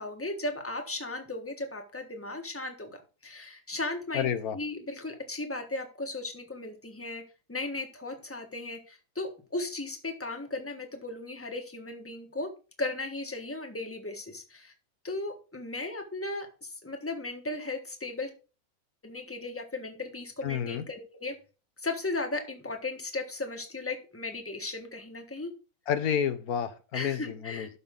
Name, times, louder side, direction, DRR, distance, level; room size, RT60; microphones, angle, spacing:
voice 1, 0.0-7.2 7.5-12.5 12.8-14.7 15.0-18.3 19.0-21.4 21.8-25.5 26.9-27.7, left 2 dB, 10° left, 4 dB, 1.4 m, -36 dB
voice 2, 4.1-4.6 20.4-20.8 25.9-27.7, left 8 dB, 85° left, 10 dB, 1.3 m, -30 dB
12.5 x 5.6 x 3.7 m, 0.34 s
omnidirectional pair, 1.5 m